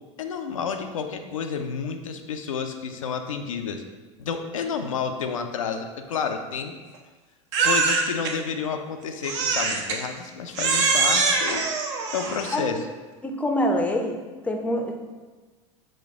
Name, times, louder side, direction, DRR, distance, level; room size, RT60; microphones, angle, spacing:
voice 1, 0.2-3.8 4.2-6.8 7.6-11.7 12.1-12.8, left 6 dB, 85° left, 5 dB, 0.4 m, -30 dB
Crying sobbing, 7.5-8.3 9.2-10.0 10.5-12.7, right 4 dB, 60° right, 0.6 m, -23 dB
voice 2, 13.2-14.2 14.4-15.0, left 1 dB, 10° left, 3 dB, 0.5 m, -25 dB
4.1 x 2.3 x 4.5 m, 1.3 s
hypercardioid pair, 90°, 17 cm